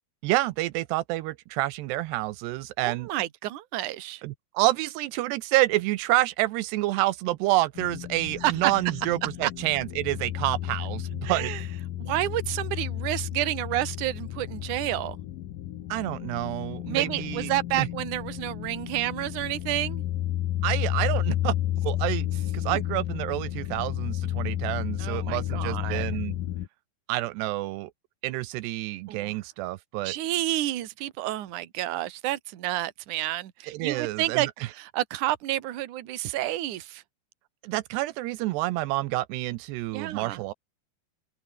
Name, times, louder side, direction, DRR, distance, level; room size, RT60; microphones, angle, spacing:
voice 1, 0.2-3.1 4.2-11.5 15.9-17.5 17.8-17.9 20.6-21.5 21.8-22.3 22.5-26.3 27.1-27.9 28.2-30.2 33.7-34.5 37.6-40.5, right 17 dB, 85° right, 2.9 m, -28 dB
voice 2, 2.8-4.2 8.4-8.7 9.4-9.5 11.2-11.6 12.0-15.2 16.9-20.0 22.7-22.8 25.0-26.2 29.1-29.3 30.0-37.0 39.9-40.4, right 15 dB, 60° right, 2.6 m, -30 dB
sound 1, 7.8-26.7, left 13 dB, 65° left, 2.5 m, -32 dB
open air
omnidirectional pair, 4.8 m